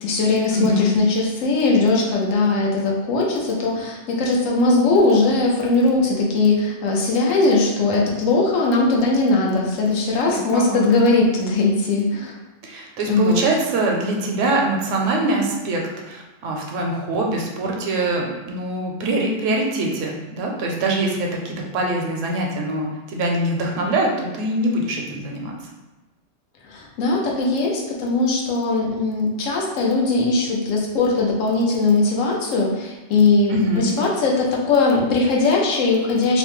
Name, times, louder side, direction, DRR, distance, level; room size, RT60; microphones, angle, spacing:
voice 1, 0.0-12.3 13.1-13.4 26.7-36.4, left 3 dB, 85° left, -1 dB, 1.0 m, -19 dB
voice 2, 0.5-0.9 10.5-10.9 12.6-25.6 33.5-33.9, right 2 dB, 75° right, 0 dB, 0.9 m, -23 dB
2.8 x 2.1 x 3.0 m, 1.1 s
omnidirectional pair, 1.3 m